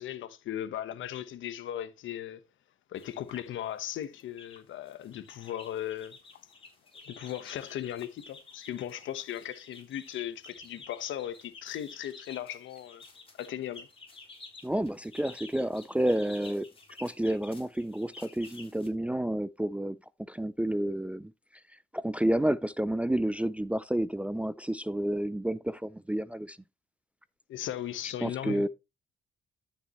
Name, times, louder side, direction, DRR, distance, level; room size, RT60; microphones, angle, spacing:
voice 1, 0.0-2.4 2.9-6.4 7.1-13.0 13.4-13.9 27.5-28.7, left 11 dB, 75° left, 1.1 m, -37 dB
sound 1, 2.9-3.4 4.0-4.6 4.9-18.9, left 3 dB, 25° left, 3.7 m, -51 dB
voice 2, 14.6-16.7 17.0-20.0 20.3-21.3 21.9-26.6 28.2-28.7, right 1 dB, 5° right, 0.4 m, -30 dB
12.5 x 6.8 x 3.0 m
cardioid pair, 90°, 20 cm